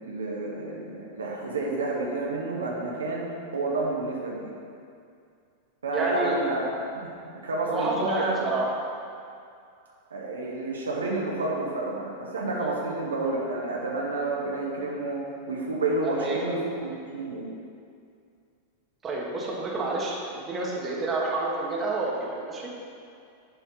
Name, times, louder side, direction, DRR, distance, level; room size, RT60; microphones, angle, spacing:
voice 1, 0.0-3.3 3.5-4.5 5.8-6.7 7.0-8.3 10.1-15.2 15.5-17.4, right 2 dB, 70° right, -3 dB, 1.3 m, -30 dB
voice 2, 5.9-6.4 7.7-8.8 12.6-12.7 16.2-16.6 19.0-22.7, right 2 dB, 20° right, -4 dB, 1.7 m, -29 dB
10.5 x 4.1 x 5.8 m, 2.4 s
figure-of-eight pair, 90°, 0 cm